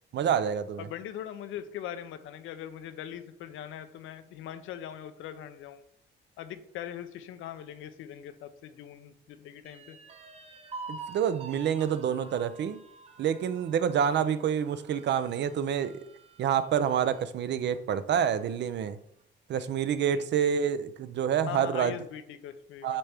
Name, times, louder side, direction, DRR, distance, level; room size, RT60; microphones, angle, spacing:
voice 1, 0.1-0.9 10.9-12.8 13.2-16.0 16.4-19.0 19.5-21.9 22.8-23.0, right 8 dB, 60° right, 0.6 m, -27 dB
voice 2, 0.8-5.8 6.4-10.0 14.1-14.3 19.5-19.7 20.1-20.3 21.5-23.0, left 10 dB, 85° left, 0.6 m, -41 dB
sound 1, 9.6-17.3 17.7-17.8 18.2-18.9, right 4 dB, 30° right, 0.9 m, -48 dB
8.3 x 4.4 x 3.5 m
cardioid pair, 90°, 20 cm